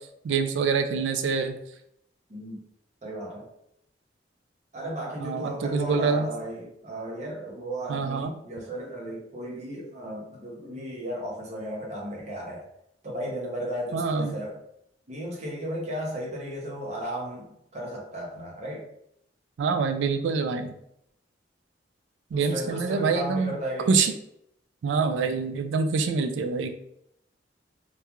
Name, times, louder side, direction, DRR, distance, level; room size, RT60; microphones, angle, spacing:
voice 1, 0.2-1.5 5.2-6.3 7.9-8.3 13.9-14.4 19.6-20.7 22.3-23.6 23.9-24.1 24.8-26.7, right 5 dB, 85° right, 8 dB, 0.3 m, -25 dB
voice 2, 2.3-2.6 3.0-3.5 4.7-12.7 13.0-14.6 15.1-18.9 22.3-24.0, right 1 dB, 40° right, -2 dB, 0.7 m, -35 dB
2.9 x 2.3 x 2.3 m, 0.76 s
head